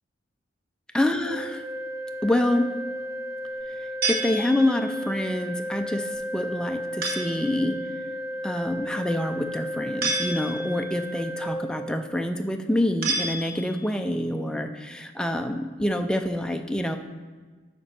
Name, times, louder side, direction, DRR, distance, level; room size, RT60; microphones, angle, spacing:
voice 1, 0.9-1.6 2.2-2.7 3.8-7.8 8.4-17.0, left 1 dB, 5° left, 5 dB, 0.4 m, -26 dB
Organ, 1.2-12.3, equal, 25° right, 1.5 m, -34 dB
sound 1, 4.0-5.0 7.0-7.5 10.0-10.8 13.0-13.9, right 2 dB, 50° right, 1.2 m, -29 dB
9.8 x 6.0 x 4.3 m, 1.4 s
head